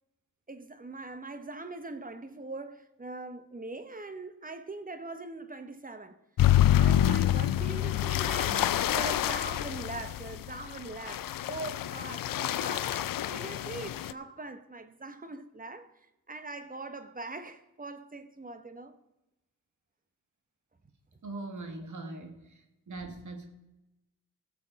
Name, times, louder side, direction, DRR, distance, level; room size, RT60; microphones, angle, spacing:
voice 1, 0.5-6.2 6.7-8.6 8.9-15.9 16.3-18.9, right 3 dB, 25° right, 1.0 m, -42 dB
sound 1, 6.4-14.1, left 12 dB, 75° left, 0.5 m, -27 dB
voice 2, 8.4-9.0 21.2-23.5, right 2 dB, 60° right, 2.0 m, -42 dB
18.0 x 7.0 x 4.1 m
wide cardioid pair, 100°, 35 cm